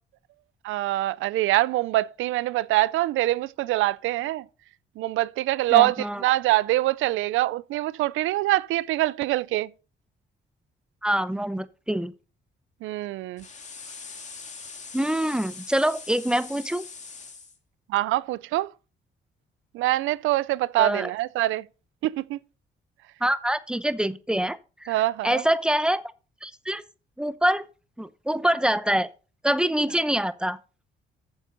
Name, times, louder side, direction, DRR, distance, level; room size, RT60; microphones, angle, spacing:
voice 1, 0.6-4.5 5.0-9.7 12.8-13.5 17.9-18.7 19.7-21.7 22.0-22.4 24.9-25.4, right 16 dB, 85° right, 0.4 m, -24 dB
voice 2, 5.7-6.2 11.0-12.1 14.9-16.8 20.8-21.1 23.2-24.9 25.2-26.0 26.4-26.8 27.2-27.7 28.0-29.1 29.4-30.6, right 1 dB, 5° right, 0.8 m, -25 dB
sound 1, 13.4-17.6, left 4 dB, 35° left, 2.2 m, -42 dB
9.5 x 7.4 x 3.9 m
cardioid pair, 90°, 20 cm